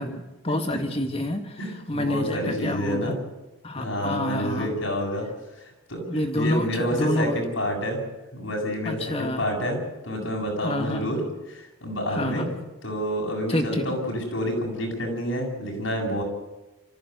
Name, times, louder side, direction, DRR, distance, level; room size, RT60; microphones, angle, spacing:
voice 1, 0.0-1.6 1.9-3.2 3.6-4.7 6.1-7.4 8.9-9.4 10.6-11.2 12.1-12.6 13.5-13.8, left 1 dB, 30° left, 5 dB, 2.1 m, -28 dB
voice 2, 1.6-3.2 3.7-5.3 5.6-8.0 8.3-9.8 10.0-11.2 11.5-12.5 12.8-16.2, equal, 70° left, -1 dB, 7.7 m, -28 dB
27.5 x 14.5 x 8.0 m, 1.0 s
head